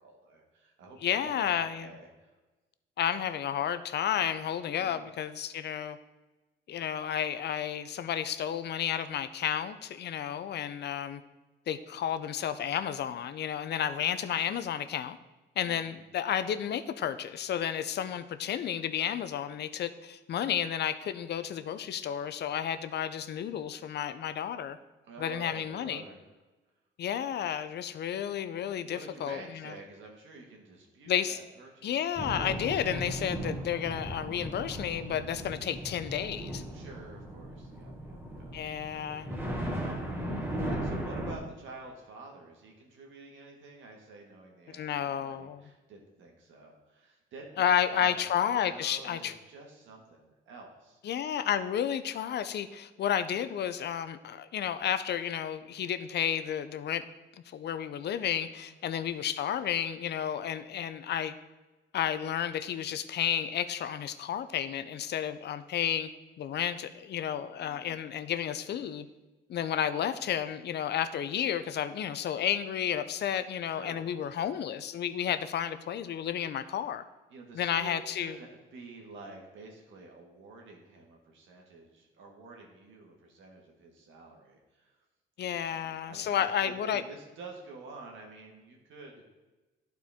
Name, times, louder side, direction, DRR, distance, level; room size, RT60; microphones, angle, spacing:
voice 1, 0.0-2.3 4.7-5.1 15.6-16.0 25.0-26.3 28.8-32.1 36.7-38.5 38.9-51.0 58.6-59.2 67.6-68.0 73.7-74.4 77.3-85.0 85.4-89.2, right 3 dB, 75° right, 1 dB, 1.7 m, -49 dB
voice 2, 1.0-1.9 3.0-6.0 6.7-11.2 11.7-15.2 15.6-24.8 25.2-26.0 27.0-29.4 31.1-31.4 31.8-36.6 38.5-39.3 44.7-45.6 47.6-49.3 51.0-57.0 57.5-61.3 61.9-66.1 66.4-69.1 69.5-77.0 77.5-78.3 85.4-87.0, left 9 dB, 60° left, 12 dB, 0.5 m, -32 dB
sound 1, 32.2-41.3, right 1 dB, 10° right, 1.5 m, -37 dB
11.0 x 4.5 x 3.6 m, 1.2 s
cardioid pair, 90°, 20 cm